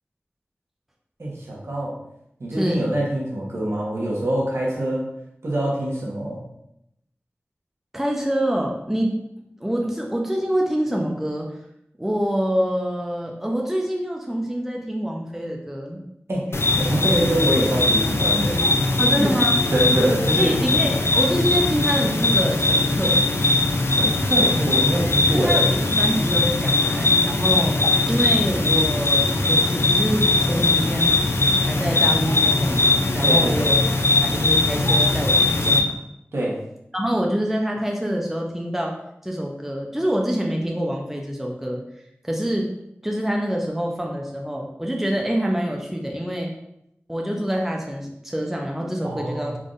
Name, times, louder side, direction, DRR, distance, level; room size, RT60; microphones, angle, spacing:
voice 1, 1.2-2.0 2.4-5.1 5.4-6.4 16.3-18.6 19.1-19.3 19.7-20.6 23.9-25.6 33.2-33.8 36.3-36.6 49.0-49.6, right 1 dB, 75° right, -4 dB, 1.1 m, -24 dB
voice 2, 7.9-9.1 9.6-11.5 12.0-16.0 19.0-19.5 20.3-23.2 25.3-27.8 28.1-31.2 31.6-33.7 34.1-35.9 36.9-38.9 39.2-41.8 42.2-42.7 43.0-46.5 47.1-49.5, equal, 5° right, 0 dB, 0.6 m, -26 dB
sound 1, 16.5-35.8, left 2 dB, 65° left, 0.4 m, -20 dB
3.7 x 3.5 x 2.5 m, 0.80 s
wide cardioid pair, 55°, 5 cm